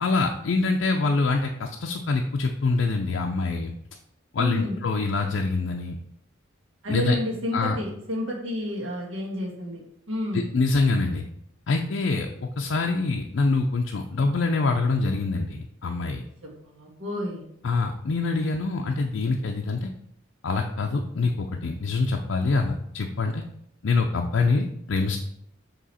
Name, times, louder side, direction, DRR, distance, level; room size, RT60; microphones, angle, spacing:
voice 1, 0.0-3.7 4.3-5.9 6.9-7.2 7.5-7.8 10.3-11.2 11.7-16.2 17.6-19.9 20.4-23.4 23.8-25.2, left 3 dB, 65° left, 2 dB, 0.5 m, -25 dB
voice 2, 4.4-4.8 6.8-9.8 10.1-10.5 16.4-17.4, equal, 65° right, -4 dB, 1.5 m, -30 dB
7.5 x 3.0 x 4.2 m, 0.74 s
head